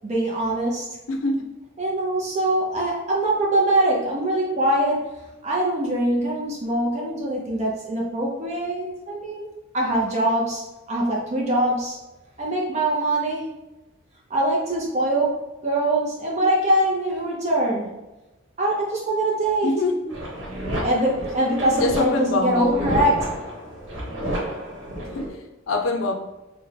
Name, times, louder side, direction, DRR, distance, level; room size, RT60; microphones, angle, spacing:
voice 1, 0.0-1.0 1.8-5.2 5.4-9.5 9.7-12.0 12.4-13.5 14.3-17.9 18.6-19.7 20.8-23.1, right 1 dB, 35° right, -3 dB, 0.5 m, -23 dB
voice 2, 1.1-1.5 19.6-20.2 21.8-23.0 25.1-26.1, left 2 dB, 85° left, 4 dB, 0.4 m, -25 dB
sound 1, 20.1-25.3, equal, 75° right, 1.0 m, -30 dB
3.4 x 2.1 x 3.2 m, 1.0 s
head